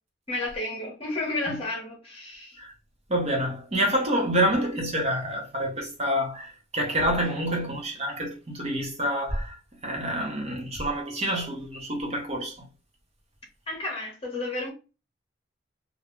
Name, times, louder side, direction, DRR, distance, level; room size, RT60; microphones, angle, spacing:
voice 1, 0.3-2.6 13.7-14.7, left 2 dB, 30° left, 0.9 m, -32 dB
voice 2, 3.1-9.5 9.8-12.5, equal, 35° right, 0.7 m, -27 dB
2.5 x 2.2 x 3.0 m
head